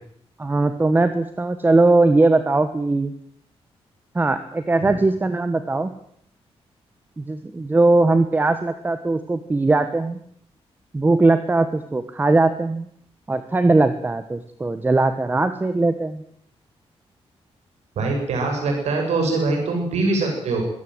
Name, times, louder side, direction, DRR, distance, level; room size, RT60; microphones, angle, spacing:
voice 1, 0.4-3.1 4.1-5.9 7.2-10.2 10.9-12.9 13.3-16.2, right 2 dB, 15° right, 10 dB, 1.3 m, -19 dB
voice 2, 18.0-20.6, right 3 dB, 90° right, 2 dB, 7.5 m, -23 dB
23.5 x 17.5 x 7.9 m, 0.66 s
wide cardioid pair, 165°, 11 cm